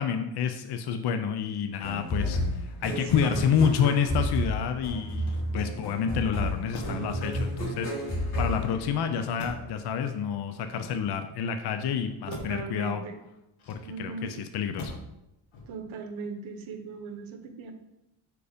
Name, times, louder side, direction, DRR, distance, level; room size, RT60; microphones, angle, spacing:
voice 1, 0.0-13.0 13.7-15.0, left 7 dB, 55° left, 8 dB, 0.5 m, -29 dB
sound 1, 1.8-9.4, equal, 35° left, 2.3 m, -31 dB
voice 2, 3.1-3.4 12.3-13.2 13.8-14.3 15.7-17.7, right 4 dB, 70° right, 6 dB, 1.0 m, -38 dB
Motor vehicle (road), 5.1-5.9 6.7-7.2 7.8-8.5 9.4-9.8 10.6-11.4 12.3-12.7 13.6-14.2 14.8-15.2 15.5-16.0, left 2 dB, 70° left, 1.4 m, -43 dB
4.9 x 4.7 x 5.0 m, 0.92 s
wide cardioid pair, 150°, 49 cm